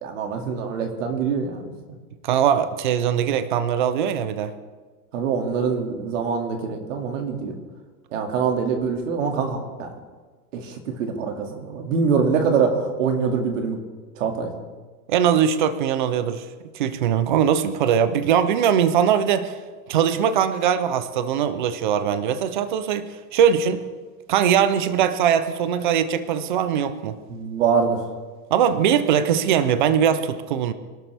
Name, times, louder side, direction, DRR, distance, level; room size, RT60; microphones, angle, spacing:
voice 1, 0.0-1.7 5.1-7.6 8.1-9.9 10.5-13.8 14.2-14.5 27.3-28.0, right 5 dB, 55° right, 4 dB, 2.4 m, -24 dB
voice 2, 2.2-4.5 15.1-16.4 16.7-19.5 19.9-23.8 24.3-27.2 28.5-30.7, right 8 dB, 35° right, 12 dB, 0.5 m, -21 dB
25.0 x 12.0 x 3.4 m, 1.4 s
supercardioid pair, 175°, 47 cm